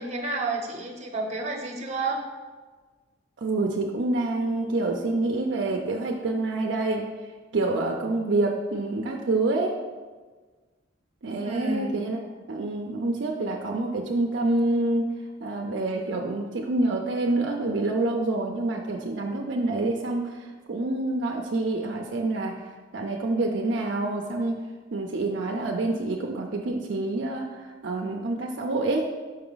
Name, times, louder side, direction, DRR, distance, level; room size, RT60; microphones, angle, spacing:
voice 1, 0.0-2.2 11.4-11.9, right 3 dB, 35° right, 2 dB, 0.8 m, -30 dB
voice 2, 3.4-7.1 7.5-9.7 11.2-12.2 12.5-15.0 15.4-22.6 22.9-24.6 24.9-29.1, right 2 dB, 65° right, 1 dB, 0.5 m, -27 dB
5.5 x 4.8 x 3.9 m, 1.4 s
head